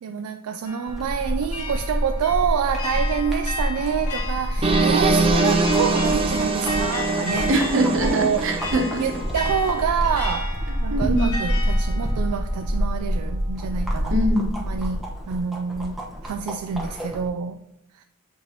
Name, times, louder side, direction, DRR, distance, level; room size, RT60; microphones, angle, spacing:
voice 1, 0.0-7.5 8.0-8.5 9.0-14.2 14.7-15.0 15.3-16.0 16.2-17.6 17.9-18.0, right 7 dB, 80° right, 0.3 m, -27 dB
sound 1, 0.6-13.6, left 3 dB, 85° left, 1.5 m, -35 dB
sound 2, 0.9-17.3, equal, ahead, 1.0 m, -27 dB
sound 3, 4.6-9.5, right 3 dB, 25° right, 0.5 m, -23 dB
voice 2, 7.5-9.0 10.9-11.3 14.1-14.5, right 1 dB, 60° right, 1.1 m, -23 dB
8.3 x 4.6 x 2.9 m
head